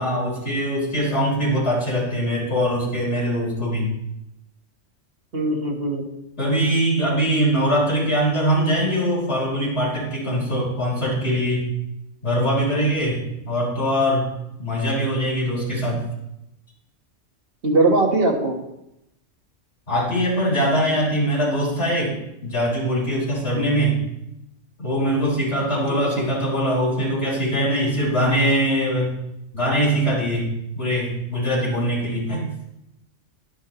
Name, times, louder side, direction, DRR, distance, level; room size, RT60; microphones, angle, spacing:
voice 1, 0.0-3.9 6.4-11.7 12.2-14.3 14.6-16.0 19.9-22.2 22.4-24.0 24.8-29.2 29.5-32.4, equal, 65° left, -6 dB, 4.6 m, -22 dB
voice 2, 5.3-6.0 17.6-18.6 23.5-23.8 25.9-26.3, right 2 dB, 50° right, 1 dB, 1.7 m, -21 dB
11.5 x 10.5 x 3.0 m, 0.86 s
omnidirectional pair, 1.3 m